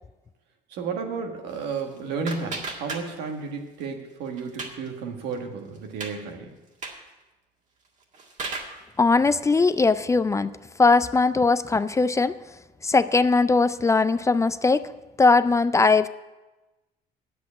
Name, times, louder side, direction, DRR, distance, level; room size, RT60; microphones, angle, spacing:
voice 1, 0.7-6.5, right 5 dB, 90° right, 3 dB, 1.6 m, -32 dB
sound 1, 1.5-3.5 3.8-4.9 5.3-5.4 5.7-6.2 6.7-7.1 7.8-8.8, right 3 dB, 45° right, 1.9 m, -36 dB
voice 2, 9.0-10.5 10.8-12.3 12.8-14.9 15.2-16.1, left 4 dB, 15° left, 13 dB, 0.4 m, -20 dB
8.4 x 7.8 x 8.4 m, 1.1 s
cardioid pair, 110°, 17 cm